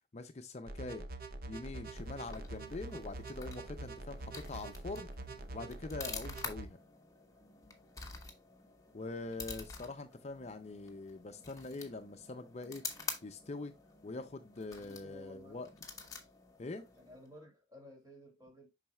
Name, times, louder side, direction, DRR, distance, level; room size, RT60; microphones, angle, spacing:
voice 1, 0.1-1.0 1.5-5.1 5.5-6.8 8.9-13.7 14.0-15.7 16.6-16.9, left 3 dB, 35° left, 0.5 m, -44 dB
sound 1, 0.7-6.7, right 2 dB, 50° right, 0.7 m, -45 dB
sound 2, 1.8-17.4, left 4 dB, 20° left, 1.1 m, -49 dB
voice 2, 14.8-15.7 16.8-18.7, left 1 dB, 20° right, 2.8 m, -55 dB
7.3 x 5.6 x 2.3 m
head